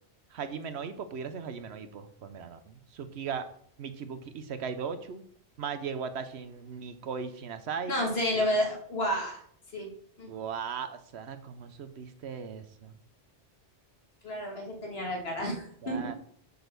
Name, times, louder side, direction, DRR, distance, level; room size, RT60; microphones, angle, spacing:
voice 1, 0.3-3.5 3.8-5.2 5.6-7.9 8.4-8.5 10.3-12.9 15.8-16.1, right 6 dB, 70° right, 10 dB, 0.9 m, -38 dB
voice 2, 7.9-9.4 9.7-9.9 10.2-10.3 14.2-16.1, equal, 60° left, 1 dB, 2.0 m, -30 dB
6.8 x 4.1 x 6.5 m, 0.63 s
omnidirectional pair, 1.2 m